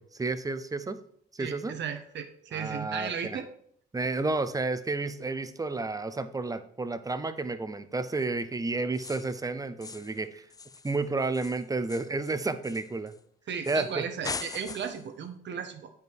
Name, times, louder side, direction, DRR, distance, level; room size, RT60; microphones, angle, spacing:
voice 1, 0.1-1.0 1.3-1.7 2.5-3.4 3.9-10.5 10.8-13.1 13.7-14.1, right 3 dB, 20° right, 11 dB, 0.8 m, -31 dB
voice 2, 1.4-3.5 13.5-15.9, right 7 dB, 65° right, 7 dB, 1.4 m, -35 dB
sound 1, 8.9-9.4 9.8-10.2 10.5-13.2 13.6-13.9 14.2-15.1, left 4 dB, 20° left, 0.4 m, -41 dB
9.0 x 5.4 x 4.8 m, 0.65 s
cardioid pair, 90°, 20 cm